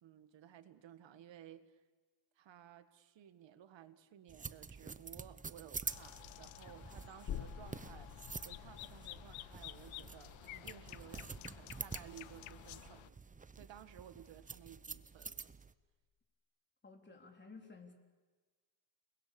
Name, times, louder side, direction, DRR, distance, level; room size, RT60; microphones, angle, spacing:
voice 1, 0.0-1.8 2.4-13.2 13.5-15.5, right 10 dB, 70° right, 11 dB, 1.8 m, -57 dB
sound 1, 4.3-15.7, right 4 dB, 15° right, 0.8 m, -48 dB
sound 2, 5.9-13.1, left 17 dB, 90° left, 0.7 m, -53 dB
sound 3, 7.3-14.6 14.9-15.0, left 8 dB, 45° left, 1.4 m, -51 dB
voice 2, 16.8-17.9, left 4 dB, 25° left, 3 dB, 4.1 m, -54 dB
29.5 x 21.0 x 7.0 m, 1.3 s
cardioid pair, 115°, 46 cm